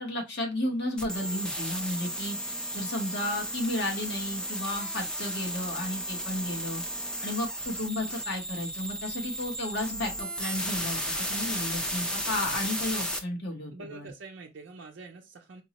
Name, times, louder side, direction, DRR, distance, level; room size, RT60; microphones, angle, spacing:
voice 1, 0.0-2.4 2.7-6.8 7.2-11.0 11.3-14.1, left 1 dB, 60° left, 1.0 m, -33 dB
sound 1, 1.0-13.2, equal, 5° left, 0.4 m, -34 dB
voice 2, 13.7-15.6, right 3 dB, 80° right, 0.5 m, -45 dB
4.3 x 2.1 x 2.8 m
head